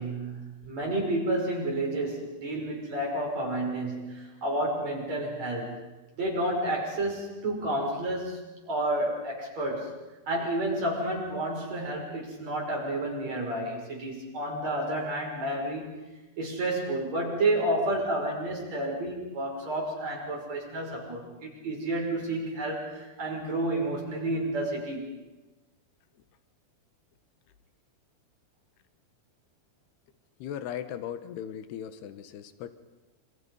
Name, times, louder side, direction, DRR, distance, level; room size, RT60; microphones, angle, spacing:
voice 1, 0.0-5.8 6.1-10.0 10.3-15.9 16.4-25.1, right 1 dB, 40° right, 0 dB, 7.0 m, -30 dB
voice 2, 30.4-32.7, left 9 dB, 80° left, 10 dB, 3.4 m, -38 dB
28.0 x 27.0 x 5.5 m, 1.1 s
omnidirectional pair, 4.7 m